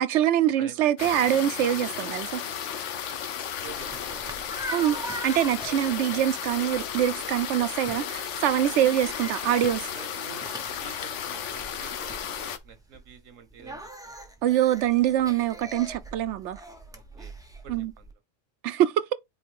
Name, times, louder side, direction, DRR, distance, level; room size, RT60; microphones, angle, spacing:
voice 1, 0.0-2.4 4.7-9.9 14.4-16.6 17.7-17.9 18.6-19.1, right 12 dB, 70° right, 0.9 m, -24 dB
sound 1, 1.0-12.6, left 8 dB, 70° left, 1.0 m, -34 dB
sound 2, 3.2-18.1, equal, 5° right, 0.9 m, -42 dB
voice 2, 3.6-4.4 5.7-5.8 8.6-8.7 9.9-14.2 16.9-17.3 17.6-18.1, right 7 dB, 90° right, 1.4 m, -48 dB
8.4 x 3.3 x 3.5 m
omnidirectional pair, 1.3 m